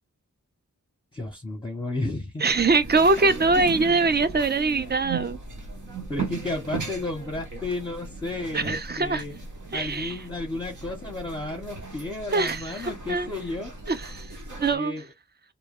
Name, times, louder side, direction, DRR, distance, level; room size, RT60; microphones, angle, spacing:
voice 1, 1.1-2.4 3.7-3.9 6.1-9.3 9.7-13.7 14.7-15.1, left 2 dB, 15° left, 0.8 m, -33 dB
voice 2, 2.4-5.4 8.5-9.2 9.7-10.2 12.3-13.3 13.9-14.3 14.6-14.9, right 3 dB, 30° right, 0.4 m, -23 dB
sound 1, 2.5-14.8, right 4 dB, 65° right, 0.9 m, -37 dB
2.2 x 2.2 x 3.4 m
cardioid pair, 55°, 32 cm